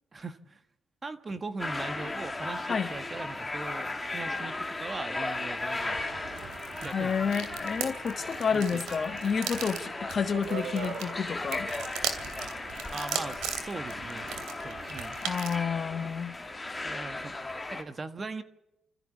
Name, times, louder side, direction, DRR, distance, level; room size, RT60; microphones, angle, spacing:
voice 1, 0.1-0.6 1.0-6.0 6.8-7.1 8.5-8.8 12.9-15.2 16.0-16.1 16.8-17.3 17.7-18.4, right 3 dB, 30° right, 1.5 m, -40 dB
sound 1, 1.6-17.8, left 2 dB, 15° left, 2.0 m, -36 dB
sound 2, 5.8-15.6, right 8 dB, 90° right, 2.7 m, -38 dB
voice 2, 6.9-11.7 15.2-16.4, left 6 dB, 45° left, 1.4 m, -30 dB
26.5 x 14.5 x 8.4 m
cardioid pair, 90°, 0 cm